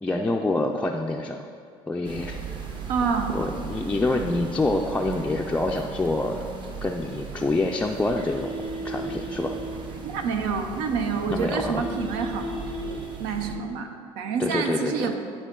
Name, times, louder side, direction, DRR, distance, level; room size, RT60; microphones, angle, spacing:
voice 1, 0.0-1.4 1.9-2.4 3.3-6.4 6.8-8.6 8.8-9.5 11.3-11.8 14.4-15.1, left 2 dB, 10° left, 0 dB, 0.3 m, -26 dB
sound 1, 2.0-13.6, right 3 dB, 40° right, 1.0 m, -36 dB
voice 2, 2.9-3.4 10.0-12.4 12.8-13.9 14.2-15.2, right 5 dB, 85° right, 6 dB, 0.7 m, -27 dB
11.0 x 4.5 x 3.7 m, 2.3 s
cardioid pair, 110°, 13 cm